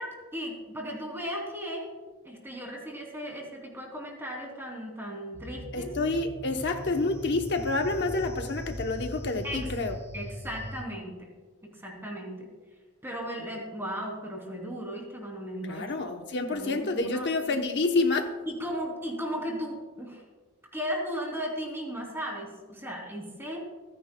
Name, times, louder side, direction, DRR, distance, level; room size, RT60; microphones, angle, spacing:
voice 1, 0.0-1.9 2.2-5.9 8.0-8.1 9.4-9.7 10.1-11.3 11.6-12.5 13.0-15.9 16.5-17.3 18.5-20.2 20.7-23.6, equal, 10° right, 0 dB, 2.9 m, -36 dB
sound 1, 5.3-10.8, equal, 15° left, 1.2 m, -40 dB
voice 2, 5.7-10.0 15.7-18.3, left 3 dB, 50° left, 4 dB, 0.9 m, -28 dB
28.0 x 10.0 x 2.3 m, 1.3 s
head